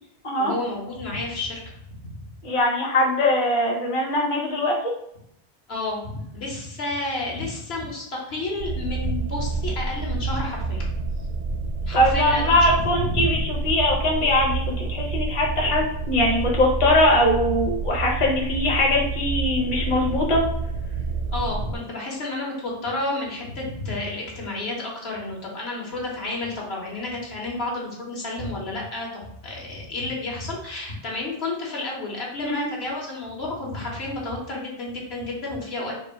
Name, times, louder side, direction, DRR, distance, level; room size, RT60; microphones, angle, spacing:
voice 1, 0.4-1.8 2.1-2.3 5.7-10.9 11.8-13.4 21.3-36.0, left 2 dB, 65° left, -3 dB, 1.3 m, -31 dB
voice 2, 2.4-4.8 11.9-20.4 32.4-32.6, left 1 dB, 35° left, -2 dB, 0.8 m, -21 dB
sound 1, 8.6-21.8, right 3 dB, 60° right, 0.6 m, -28 dB
3.3 x 2.6 x 4.3 m, 0.75 s
omnidirectional pair, 1.1 m